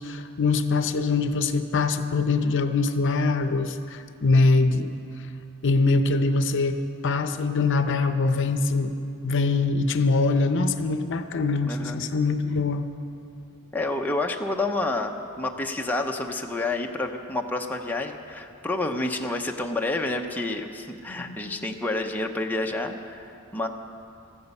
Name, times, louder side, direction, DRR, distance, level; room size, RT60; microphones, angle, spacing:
voice 1, 0.0-4.9 5.6-8.9 9.2-12.8 21.1-21.7, left 3 dB, 60° left, 9 dB, 0.7 m, -23 dB
voice 2, 11.6-12.0 13.7-23.7, left 2 dB, 10° left, 2 dB, 0.7 m, -29 dB
15.0 x 13.5 x 5.5 m, 2.7 s
head